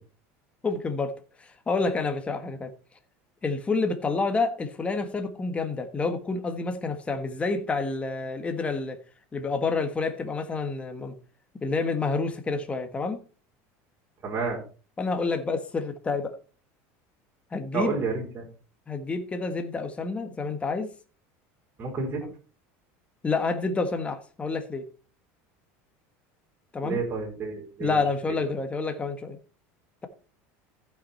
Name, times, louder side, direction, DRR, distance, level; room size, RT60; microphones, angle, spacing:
voice 1, 0.6-1.1 1.4-2.7 3.4-9.0 9.3-11.1 11.6-13.2 15.0-16.4 17.5-18.0 18.9-20.9 22.2-22.3 23.2-24.8 26.7-27.0 27.8-29.4, left 4 dB, 15° left, 1.4 m, -28 dB
voice 2, 14.2-14.6 17.7-18.4 21.8-22.2 26.8-27.9, right 4 dB, 30° right, 4.1 m, -30 dB
15.0 x 6.0 x 4.2 m
supercardioid pair, 130°, 7 cm